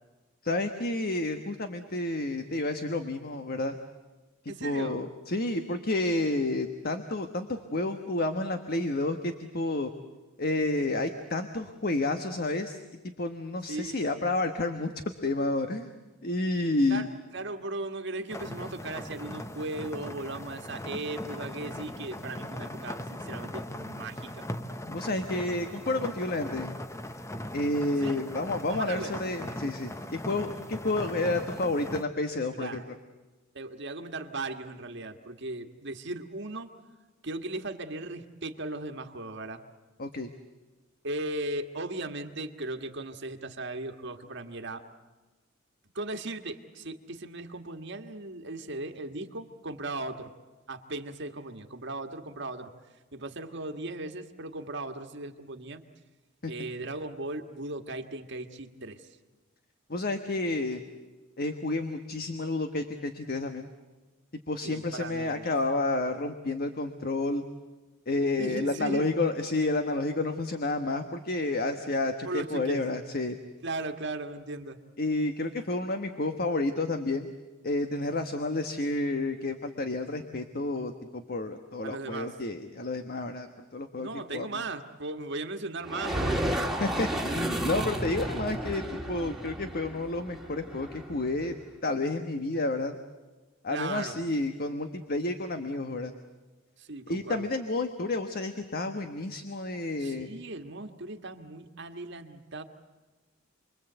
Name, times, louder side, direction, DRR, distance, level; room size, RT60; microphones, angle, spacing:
voice 1, 0.4-3.7 4.6-9.9 10.4-12.8 13.2-14.9 15.2-15.9 16.2-17.1 24.9-26.8 27.5-29.9 30.3-32.8 40.0-40.3 56.4-56.5 59.9-60.8 61.4-63.7 64.5-67.4 68.1-73.4 75.0-77.3 77.6-83.5 83.7-84.5 86.8-91.5 91.8-93.0 93.6-96.1 97.1-100.3, left 2 dB, 50° left, 7 dB, 1.3 m, -30 dB
voice 2, 4.5-5.0 13.7-14.1 16.9-24.4 28.0-28.2 28.7-29.1 32.5-32.8 33.5-36.7 37.2-39.6 41.0-44.8 45.9-50.3 50.7-52.7 53.1-55.8 56.5-59.1 64.6-65.5 68.4-69.1 72.2-72.8 73.6-74.8 81.8-82.3 84.0-86.7 93.7-94.2 96.8-97.5 100.0-102.6, right 2 dB, 60° right, 5 dB, 1.7 m, -37 dB
sound 1, 18.3-32.0, left 1 dB, 15° left, 0.9 m, -39 dB
sound 2, 85.8-91.5, right 1 dB, ahead, 2.0 m, -32 dB
29.0 x 22.5 x 8.1 m, 1.2 s
head